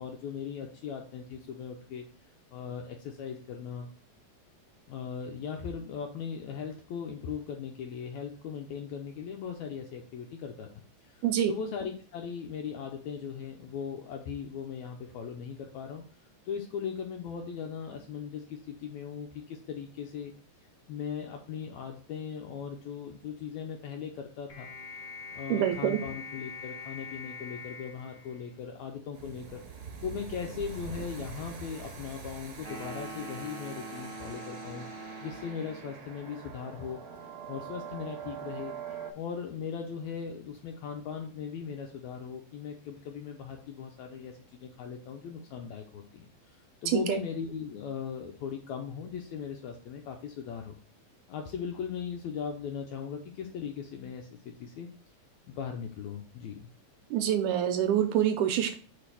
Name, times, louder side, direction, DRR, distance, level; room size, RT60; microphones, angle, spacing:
voice 1, 0.0-2.0 2.5-3.9 4.9-16.0 16.4-20.3 20.6-24.7 25.3-29.6 30.0-34.9 35.2-37.0 37.5-38.7 39.1-50.8 51.3-54.3 54.6-54.9 55.5-56.7, left 7 dB, 85° left, 3 dB, 1.7 m, -39 dB
sound 1, 24.5-29.0, left 4 dB, 70° left, 1.5 m, -44 dB
voice 2, 25.5-26.0 46.9-47.2 57.1-58.7, right 10 dB, 80° right, 7 dB, 1.9 m, -26 dB
sound 2, 29.1-39.1, right 6 dB, 60° right, 1.4 m, -44 dB
sound 3, 32.6-36.0, right 3 dB, ahead, 1.5 m, -43 dB
5.1 x 4.1 x 5.6 m, 0.42 s
omnidirectional pair, 3.9 m